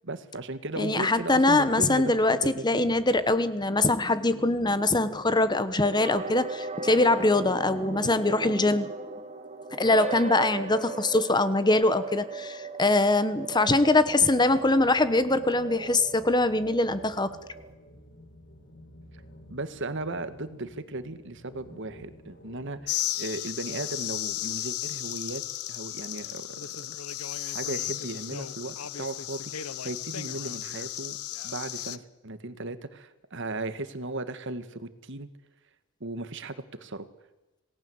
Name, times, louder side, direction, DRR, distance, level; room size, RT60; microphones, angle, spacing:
voice 1, 0.0-2.9 19.5-25.4 25.7-26.9 27.3-31.2 31.4-35.3 36.0-37.1, right 2 dB, 55° right, 12 dB, 1.7 m, -36 dB
voice 2, 0.8-8.9 9.7-17.3, left 2 dB, 20° left, 13 dB, 1.1 m, -23 dB
sound 1, 5.8-17.7, right 3 dB, 30° right, 1.8 m, -38 dB
sound 2, 13.7-22.9, left 1 dB, 55° left, 5.2 m, -51 dB
sound 3, 22.9-32.0, left 12 dB, 80° left, 0.9 m, -34 dB
27.5 x 18.5 x 8.0 m, 1.1 s
head